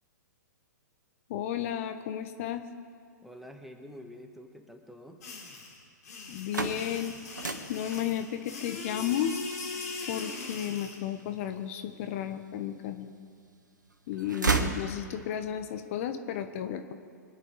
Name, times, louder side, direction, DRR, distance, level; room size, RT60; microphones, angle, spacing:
voice 1, 1.3-2.6 6.3-7.1 7.7-9.3 10.1-13.1 14.1-16.9, left 10 dB, 45° left, 8 dB, 1.1 m, -33 dB
voice 2, 3.2-5.2, equal, ahead, 5 dB, 1.2 m, -47 dB
sound 1, 5.2-11.0, left 3 dB, 60° left, 3.5 m, -40 dB
sound 2, 6.2-12.2 12.7-13.6 13.9-15.5, right 4 dB, 80° right, 1.3 m, -34 dB
24.5 x 9.7 x 4.9 m, 2.2 s
figure-of-eight pair, 110°, 10 cm